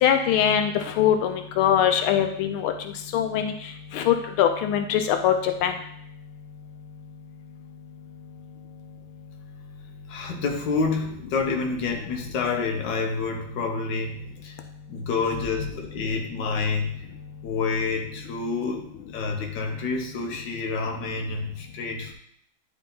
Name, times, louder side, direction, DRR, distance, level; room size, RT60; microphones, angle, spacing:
voice 1, 0.0-0.7 1.0-2.7 3.1-3.5 3.9-5.7, left 9 dB, 90° left, 6 dB, 1.5 m, -22 dB
voice 2, 10.1-14.6 14.9-16.9 17.4-18.8 19.1-22.1, left 4 dB, 60° left, 1 dB, 1.6 m, -28 dB
11.0 x 3.8 x 3.9 m, 0.68 s
omnidirectional pair, 2.2 m